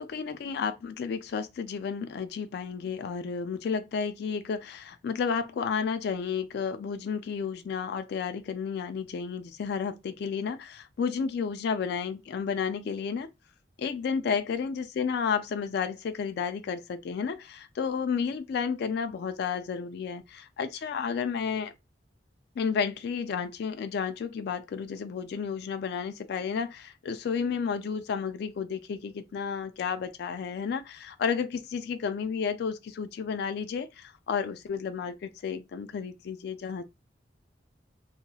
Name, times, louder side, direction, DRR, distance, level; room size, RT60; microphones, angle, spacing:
voice 1, 0.0-13.3 13.8-21.7 22.6-36.8, left 6 dB, 60° left, 0.3 m, -32 dB
2.8 x 2.8 x 2.2 m
head